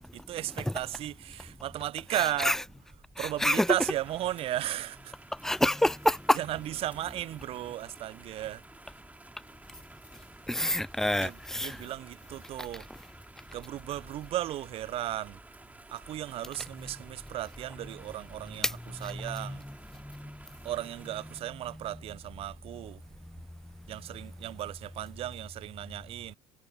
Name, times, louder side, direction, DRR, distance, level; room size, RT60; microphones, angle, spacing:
voice 1, 0.1-2.6 3.2-5.1 6.3-8.6 11.2-12.9 13.5-15.4 15.9-19.6 20.6-23.0 23.9-26.3, right 13 dB, 50° right, 0.7 m, -35 dB
voice 2, 3.2-3.7 5.4-6.4 10.5-11.8 19.2-19.6 20.0-20.3, left 1 dB, 5° left, 0.5 m, -27 dB
sound 1, 3.3-21.4, right 2 dB, 10° right, 2.8 m, -53 dB
figure-of-eight pair, 55°, 13 cm